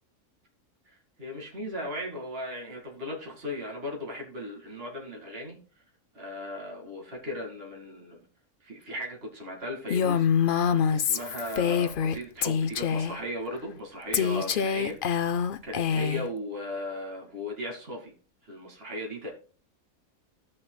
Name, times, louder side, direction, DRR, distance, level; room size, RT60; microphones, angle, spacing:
voice 1, 0.9-5.6 6.1-8.2 8.6-10.3 10.9-15.0 15.2-18.1 18.4-19.3, left 1 dB, 45° right, 0 dB, 2.6 m, -37 dB
Female speech woman speaking, 9.9-12.2 12.4-13.2 14.1-16.3, left 7 dB, 55° left, 0.6 m, -25 dB
16.5 x 6.5 x 2.3 m, 0.39 s
omnidirectional pair, 1.5 m